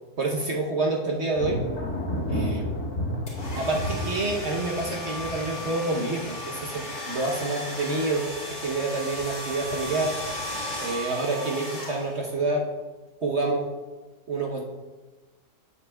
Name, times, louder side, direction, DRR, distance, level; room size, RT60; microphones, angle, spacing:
voice 1, 0.2-1.6 2.3-2.7 3.5-8.3 8.6-10.2 10.8-12.6 13.2-13.7 14.3-14.6, right 2 dB, 50° right, -1 dB, 0.9 m, -28 dB
Thunder, 1.4-7.8 8.1-8.7 9.2-10.0, left 1 dB, 60° left, 1.7 m, -33 dB
sound 1, 3.3-12.4, left 1 dB, 45° left, 2.6 m, -35 dB
9.6 x 7.8 x 2.2 m, 1.2 s
omnidirectional pair, 1.8 m